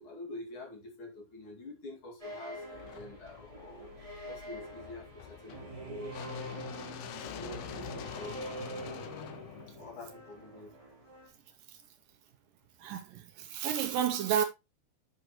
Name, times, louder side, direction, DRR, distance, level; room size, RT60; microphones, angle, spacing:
voice 1, 0.0-3.9 4.3-6.7 7.2-9.0 9.8-10.8, left 2 dB, 40° left, 2.6 m, -47 dB
sound 1, 2.2-11.3, right 1 dB, 25° right, 0.7 m, -45 dB
sound 2, 2.7-10.8, left 13 dB, 85° left, 2.7 m, -46 dB
voice 2, 12.8-14.4, right 9 dB, 75° right, 2.2 m, -31 dB
8.0 x 6.4 x 3.0 m
omnidirectional pair, 4.3 m